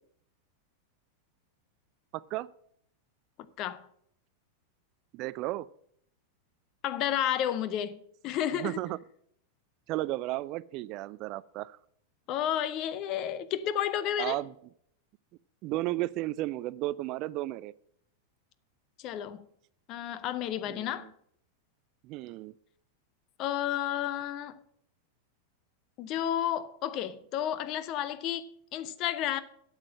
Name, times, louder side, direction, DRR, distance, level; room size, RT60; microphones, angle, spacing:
voice 1, 2.1-2.5 5.1-5.7 8.6-9.0 9.9-11.8 14.2-14.5 15.6-17.7 20.7-21.1 22.0-22.5, right 17 dB, 40° right, 0.3 m, -34 dB
voice 2, 6.8-8.8 12.3-14.4 19.0-19.5 19.9-21.1 23.4-24.6 26.0-29.4, left 11 dB, 40° left, 0.7 m, -31 dB
8.7 x 7.3 x 7.4 m
figure-of-eight pair, 90°, 0 cm